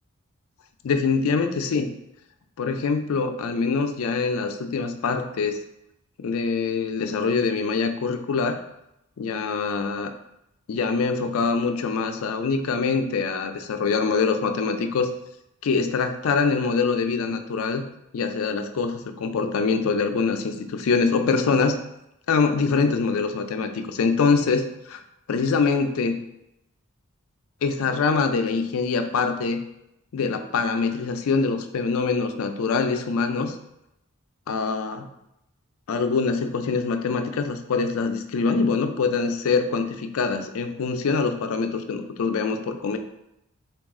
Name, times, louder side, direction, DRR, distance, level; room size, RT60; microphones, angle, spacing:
voice 1, 0.8-1.9 2.6-5.6 6.2-8.6 9.2-10.1 10.7-15.1 15.6-17.9 18.1-21.8 22.3-25.0 25.3-26.2 27.6-29.6 30.1-33.6 34.5-35.1 35.9-43.0, left 4 dB, 75° left, 7 dB, 0.4 m, -24 dB
3.9 x 2.3 x 3.6 m, 0.84 s
head